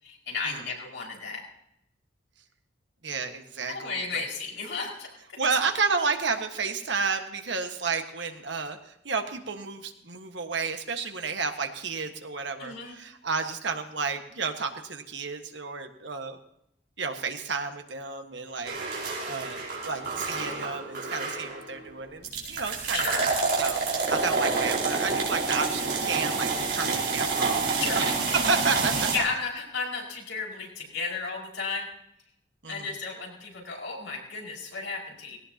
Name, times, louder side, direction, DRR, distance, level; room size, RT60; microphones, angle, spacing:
voice 1, 0.0-1.4 3.7-5.4 12.6-13.0 22.9-23.3 27.8-28.4 29.1-31.9 32.7-35.4, left 4 dB, 85° left, -2 dB, 5.2 m, -33 dB
voice 2, 3.0-4.2 5.4-16.4 17.0-29.1 32.6-32.9, right 4 dB, 75° right, 5 dB, 1.5 m, -31 dB
sound 1, 18.6-21.8 22.2-29.2, right 4 dB, 55° right, 4.6 m, -28 dB
18.5 x 17.5 x 2.9 m, 0.79 s
head